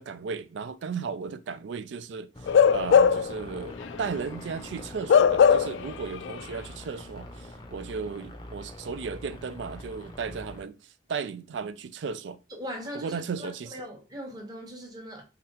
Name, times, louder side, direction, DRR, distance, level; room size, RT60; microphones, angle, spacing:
voice 1, 0.0-2.3 2.7-10.8 11.1-12.4 12.9-13.8, right 5 dB, 80° right, 0.4 m, -35 dB
sound 1, 2.3-10.6, left 1 dB, 25° left, 0.5 m, -43 dB
Bark / Livestock farm animals working animals, 2.5-3.4 3.8-4.0 5.1-5.9 6.2-6.4, left 7 dB, 85° left, 0.3 m, -19 dB
voice 2, 12.5-15.2, equal, 20° right, 1.0 m, -40 dB
3.5 x 3.4 x 2.9 m
head